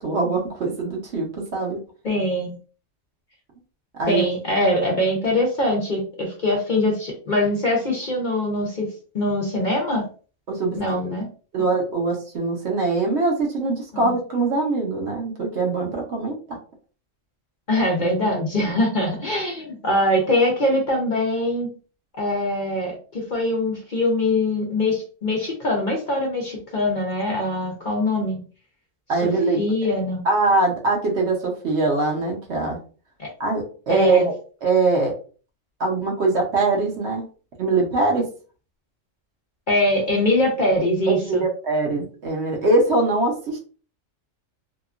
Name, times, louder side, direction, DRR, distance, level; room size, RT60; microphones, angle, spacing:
voice 1, 0.0-1.8 4.0-4.3 10.5-11.0 11.5-16.4 29.1-29.6 30.2-32.8 33.4-34.3 34.6-35.1 35.8-37.2 37.6-38.2 41.1-43.6, right 3 dB, 65° right, 0 dB, 1.0 m, -22 dB
voice 2, 2.0-2.5 4.1-8.9 9.1-10.1 10.8-11.3 13.9-14.1 17.7-21.7 22.1-28.4 29.2-29.3 29.6-30.2 33.2-33.3 33.9-34.3 39.7-41.4, left 1 dB, 45° left, -1 dB, 0.7 m, -22 dB
2.8 x 2.3 x 2.4 m, 0.38 s
omnidirectional pair, 1.3 m